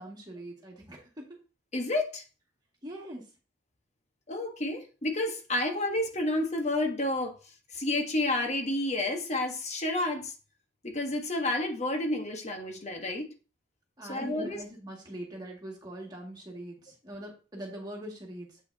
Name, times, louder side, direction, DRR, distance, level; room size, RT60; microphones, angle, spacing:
voice 1, 0.0-1.4 2.8-3.3 14.0-18.6, right 1 dB, 20° right, -2 dB, 2.1 m, -42 dB
voice 2, 1.7-2.2 4.3-7.4 7.7-10.3 10.8-13.3 14.1-14.6, left 1 dB, 35° left, 4 dB, 1.2 m, -30 dB
8.1 x 5.9 x 2.8 m, 0.34 s
head